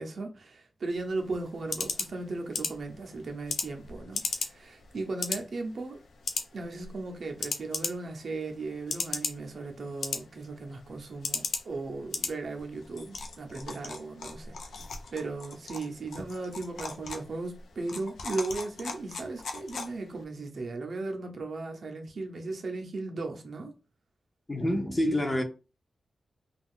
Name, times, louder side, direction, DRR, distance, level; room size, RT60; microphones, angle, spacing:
voice 1, 0.0-6.0 6.5-14.6 15.1-23.7, right 3 dB, 55° right, 0.6 m, -36 dB
sound 1, 0.9-20.2, left 4 dB, 85° left, 0.4 m, -38 dB
voice 2, 24.5-25.4, left 1 dB, 20° left, 0.5 m, -27 dB
2.4 x 2.3 x 3.5 m
wide cardioid pair, 125°, 0 cm